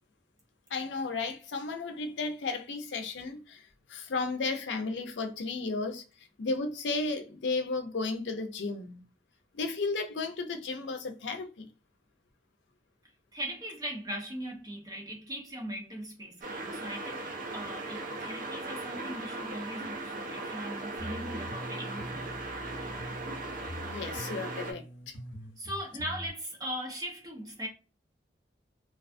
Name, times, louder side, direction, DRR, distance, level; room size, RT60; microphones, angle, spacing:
voice 1, 0.7-6.0 6.4-9.0 9.5-11.7 23.9-25.1, left 3 dB, 90° left, 0.5 m, -34 dB
voice 2, 13.3-17.3 17.5-22.3 25.6-27.7, equal, 20° right, 0.7 m, -39 dB
sound 1, 16.4-24.7, right 2 dB, 45° right, 0.4 m, -38 dB
sound 2, 21.0-26.3, equal, 55° left, 1.0 m, -43 dB
2.4 x 2.3 x 2.4 m
head